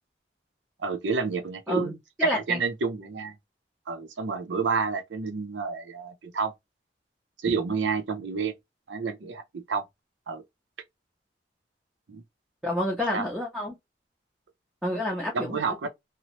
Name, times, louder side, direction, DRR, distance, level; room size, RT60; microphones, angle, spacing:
voice 1, 0.8-2.0 2.2-3.4 3.9-6.5 7.4-8.5 8.9-9.8 10.3-10.4 12.1-12.2 13.1-13.2 15.3-15.9, right 5 dB, 85° right, 0.5 m, -29 dB
voice 2, 2.2-2.6 12.6-13.7 14.8-15.9, left 1 dB, 5° right, 0.6 m, -29 dB
2.9 x 2.0 x 2.9 m
head